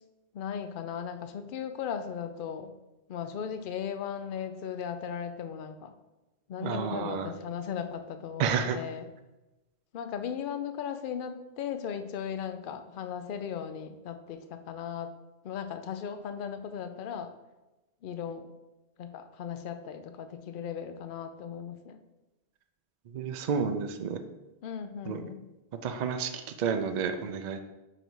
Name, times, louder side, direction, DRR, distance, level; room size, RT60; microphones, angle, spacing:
voice 1, 0.3-2.7 3.1-5.9 6.5-9.1 9.9-15.2 15.4-17.3 18.0-18.5 19.0-22.0 24.6-25.4, left 8 dB, 60° left, 9 dB, 0.6 m, -37 dB
voice 2, 6.6-7.3 8.4-8.8 23.1-24.2 25.1-25.2 25.8-27.6, right 6 dB, 55° right, 7 dB, 0.5 m, -30 dB
4.6 x 4.0 x 5.2 m, 1.0 s
omnidirectional pair, 1.1 m